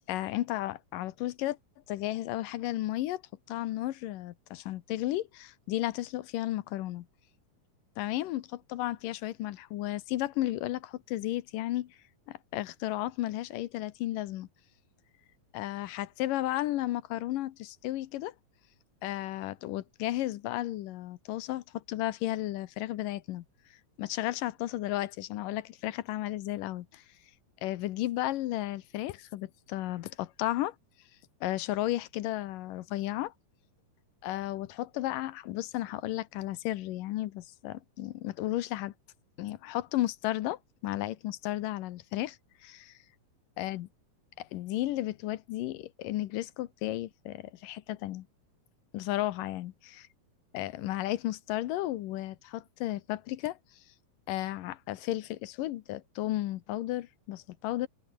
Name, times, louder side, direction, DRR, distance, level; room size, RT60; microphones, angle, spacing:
voice 1, 0.1-1.6 1.9-3.2 3.5-7.1 8.0-12.0 12.3-14.5 15.5-18.3 19.0-23.4 24.0-27.0 27.6-30.8 31.4-33.3 34.2-38.9 39.4-42.4 42.6-42.7 43.6-43.9 44.4-48.3 48.9-50.1 50.5-53.6 54.3-57.9, left 15 dB, 85° left, 2.6 m, -33 dB
open air
omnidirectional pair, 3.8 m